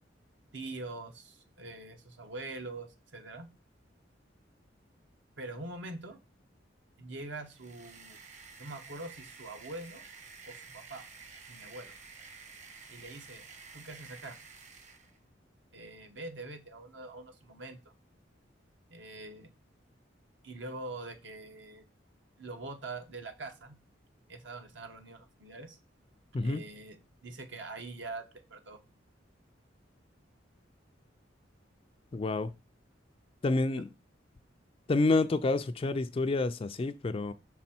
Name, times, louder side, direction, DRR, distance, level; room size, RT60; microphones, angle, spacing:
voice 1, 0.5-3.5 5.4-6.2 7.0-8.2 8.6-10.0 10.5-11.0 11.5-11.9 12.9-13.5 13.7-14.4 15.7-17.8 18.9-19.5 20.4-21.8 22.4-23.8 24.3-25.8 26.4-27.0 27.2-28.8 33.8-33.9, right 2 dB, 70° right, 1.0 m, -44 dB
sound 1, 7.4-15.2, right 5 dB, 40° right, 1.0 m, -51 dB
voice 2, 32.1-32.5 33.4-33.9 34.9-37.3, left 3 dB, 30° left, 0.3 m, -28 dB
6.1 x 4.1 x 4.3 m
head